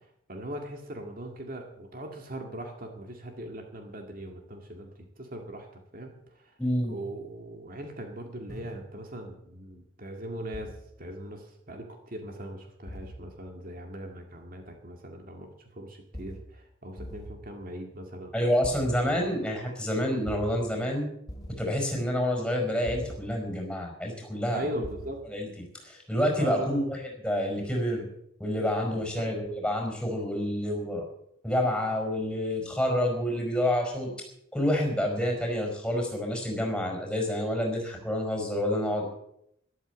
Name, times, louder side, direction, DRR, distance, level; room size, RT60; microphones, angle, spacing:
voice 1, 0.3-5.7 5.9-6.6 6.9-18.3 24.5-25.2 26.4-26.8 28.9-29.3, right 1 dB, 45° right, 3 dB, 2.1 m, -40 dB
voice 2, 6.6-6.9 18.3-21.1 21.6-24.8 25.3-25.5 25.8-28.0 28.4-31.0 31.4-34.1 34.5-39.0, left 1 dB, 5° left, 2 dB, 5.0 m, -28 dB
sound 1, 8.5-8.8 10.5-10.8 12.9-13.1 16.1-16.4 17.0-17.3 18.6-19.2 20.3-20.5 21.3-21.6 22.9-23.1 24.8-25.1, equal, 20° left, 2.9 m, -40 dB
13.5 x 12.0 x 8.1 m, 0.74 s
head